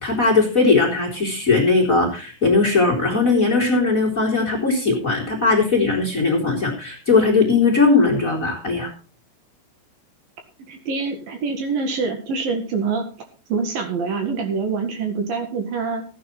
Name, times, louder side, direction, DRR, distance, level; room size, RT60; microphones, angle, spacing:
voice 1, 0.0-8.9, left 3 dB, 20° left, 2 dB, 2.9 m, -19 dB
voice 2, 10.7-13.1 13.5-16.0, right 4 dB, 65° right, 5 dB, 3.2 m, -25 dB
15.0 x 9.7 x 4.4 m, 0.34 s
omnidirectional pair, 4.8 m